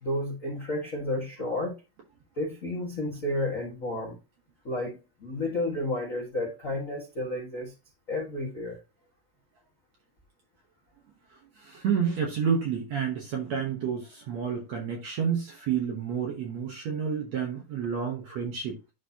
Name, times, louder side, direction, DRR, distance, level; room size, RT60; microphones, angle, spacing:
voice 1, 0.0-1.7 2.4-4.2 4.6-7.7 8.1-8.8, left 1 dB, 70° left, 0.7 m, -31 dB
voice 2, 11.6-18.9, right 7 dB, 70° right, 1.7 m, -30 dB
11.5 x 4.1 x 2.8 m
omnidirectional pair, 4.5 m